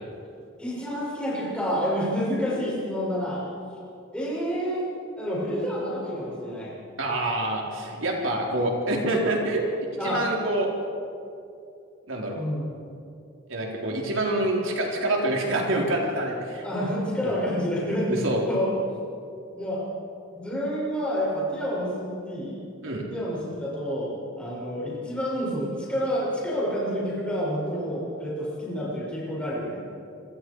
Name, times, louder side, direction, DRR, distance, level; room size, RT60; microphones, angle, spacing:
voice 1, 0.6-3.4 4.1-4.8 5.2-6.7 10.0-10.2 12.3-12.7 16.6-18.2 18.5-18.7 19.5-19.8 20.3-22.6 23.1-29.8, equal, 5° left, -6 dB, 6.7 m, -28 dB
voice 2, 7.0-9.7 10.0-10.7 12.1-12.4 13.5-16.6 17.2-17.3 18.1-18.4 22.8-23.0, right 1 dB, 80° right, -1 dB, 4.1 m, -26 dB
27.5 x 22.5 x 4.9 m, 2.5 s
head